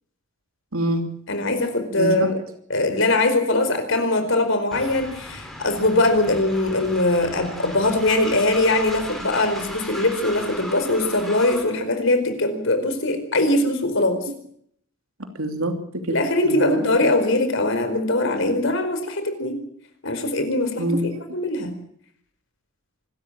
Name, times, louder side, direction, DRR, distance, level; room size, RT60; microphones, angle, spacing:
voice 1, 0.7-1.1 2.0-2.3 15.2-16.2 16.4-16.8 20.8-21.1, right 1 dB, 85° right, 6 dB, 3.0 m, -25 dB
voice 2, 1.3-2.4 2.7-14.2 16.1-19.6 20.0-20.8 21.3-21.7, left 2 dB, 65° left, 8 dB, 4.8 m, -21 dB
Train, 4.7-11.8, equal, ahead, 5.0 m, -37 dB
25.5 x 13.5 x 8.8 m, 0.66 s
head